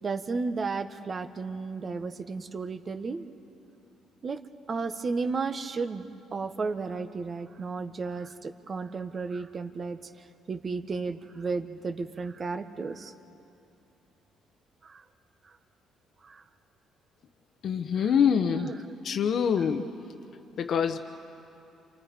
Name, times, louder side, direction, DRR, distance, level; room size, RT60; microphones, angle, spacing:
voice 1, 0.0-3.3 4.2-4.4 4.7-10.0 10.5-13.1 14.8-15.0 15.4-15.6 16.2-16.4 17.9-18.2 18.5-18.9 19.6-19.9, right 4 dB, 40° right, 9 dB, 1.3 m, -33 dB
voice 2, 17.6-18.7 19.0-19.8 20.6-21.0, left 7 dB, 60° left, 5 dB, 1.0 m, -25 dB
28.5 x 26.0 x 5.1 m, 2.8 s
supercardioid pair, 80°, 0 cm